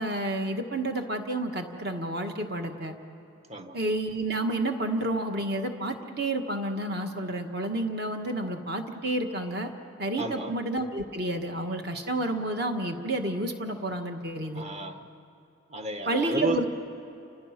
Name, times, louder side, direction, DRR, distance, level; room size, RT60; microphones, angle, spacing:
voice 1, 0.0-2.9 3.7-9.7 10.0-14.6 16.0-16.7, right 1 dB, 50° right, 4 dB, 1.7 m, -30 dB
voice 2, 10.2-10.5 14.6-15.0 15.7-16.6, right 1 dB, 30° right, 6 dB, 1.2 m, -32 dB
29.5 x 26.5 x 6.0 m, 2.8 s
head